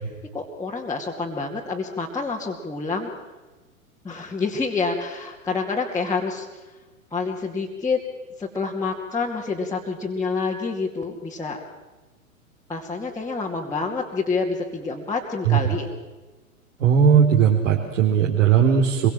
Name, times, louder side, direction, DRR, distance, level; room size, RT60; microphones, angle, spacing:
voice 1, 0.3-3.1 4.0-6.6 7.1-8.0 8.4-11.6 12.7-15.9, left 4 dB, 10° left, -4 dB, 2.4 m, -27 dB
voice 2, 16.8-19.1, right 8 dB, 55° right, -1 dB, 3.9 m, -17 dB
26.5 x 23.0 x 7.6 m, 1.2 s
figure-of-eight pair, 105°, 42 cm